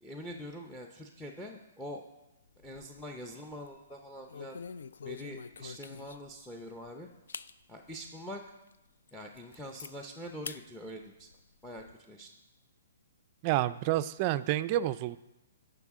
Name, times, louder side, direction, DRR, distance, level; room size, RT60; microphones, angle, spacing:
voice 1, 0.0-2.0 2.6-4.6 5.0-7.1 7.7-8.4 9.1-11.3 11.6-12.3, equal, 5° left, 3 dB, 0.6 m, -44 dB
sound 1, 2.5-3.2 3.5-3.8 4.3-6.4 6.8-6.9 7.3-7.5 8.1-8.2 8.7-8.8 9.1-9.9 10.4-10.6 11.0-11.9, left 6 dB, 75° left, 0.3 m, -45 dB
voice 2, 13.4-15.2, right 14 dB, 35° right, 14 dB, 0.3 m, -29 dB
16.5 x 5.6 x 3.6 m, 0.98 s
hypercardioid pair, 150°, 0 cm